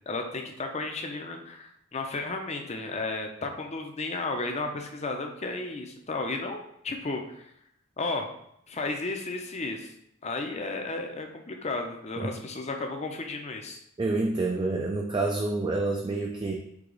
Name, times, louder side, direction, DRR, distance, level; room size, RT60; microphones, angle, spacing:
voice 1, 0.1-7.5 8.0-8.3 8.7-9.9 10.2-13.8, left 3 dB, 30° left, 3 dB, 0.6 m, -33 dB
voice 2, 14.0-16.5, right 2 dB, 20° right, 1 dB, 0.3 m, -28 dB
4.8 x 2.8 x 3.8 m, 0.74 s
head